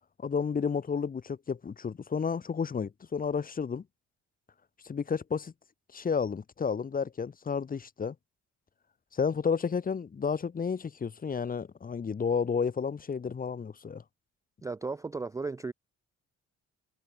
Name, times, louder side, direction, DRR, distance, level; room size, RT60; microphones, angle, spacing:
voice 1, 0.2-3.8 4.8-5.5 5.9-8.1 9.1-14.0, left 6 dB, 30° left, 0.8 m, -31 dB
voice 2, 14.6-15.7, right 4 dB, 10° right, 0.3 m, -35 dB
cardioid pair, 90°, 30 cm